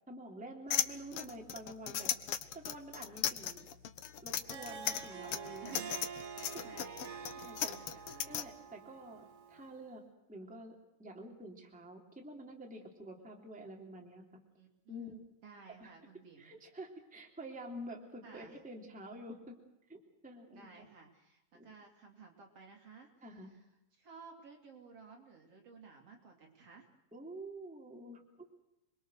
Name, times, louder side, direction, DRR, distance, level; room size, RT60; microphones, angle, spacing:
voice 1, 0.1-2.1 2.5-3.7 4.2-5.9 6.5-6.6 7.3-7.8 8.3-10.0 10.3-14.2 14.9-15.2 15.8-15.9 16.4-19.5 19.9-20.8 21.5-21.7 23.2-23.5 27.1-28.5, right 1 dB, ahead, 0 dB, 2.9 m, -48 dB
sound 1, 0.7-8.4, left 10 dB, 70° left, 1.4 m, -36 dB
Harp, 4.3-9.8, right 6 dB, 70° right, 4.0 m, -47 dB
voice 2, 5.6-6.1 6.6-7.3 7.7-8.4 14.6-16.6 18.2-18.6 20.5-23.6 23.9-26.9, right 5 dB, 45° right, 2 dB, 3.6 m, -55 dB
28.0 x 22.0 x 6.5 m, 0.85 s
omnidirectional pair, 3.8 m